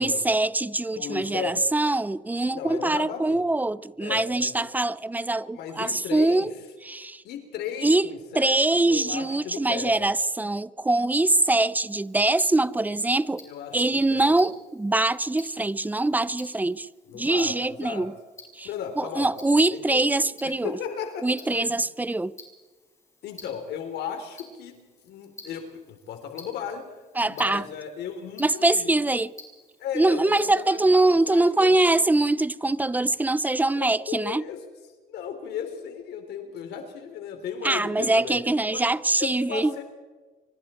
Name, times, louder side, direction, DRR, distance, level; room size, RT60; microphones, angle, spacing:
voice 1, 0.0-6.5 6.8-7.2 7.8-8.1 8.3-13.5 13.7-16.9 17.1-18.1 18.5-18.7 19.0-20.8 21.2-22.3 27.2-27.6 28.4-29.3 29.9-34.4 37.6-39.7, right 2 dB, 10° right, 0.6 m, -23 dB
voice 2, 1.0-1.6 2.5-3.4 4.0-4.7 5.6-6.5 7.2-8.6 8.9-10.1 13.4-14.4 17.1-18.1 18.6-19.3 19.7-20.0 20.4-21.8 23.2-26.9 27.2-29.0 29.8-31.7 33.8-34.6 35.1-38.4 38.7-38.8 39.2-39.8, left 8 dB, 75° left, 3.5 m, -36 dB
Tick-tock, 11.9-30.9, left 2 dB, 15° left, 6.0 m, -52 dB
25.5 x 24.5 x 4.4 m
cardioid pair, 110°, 17 cm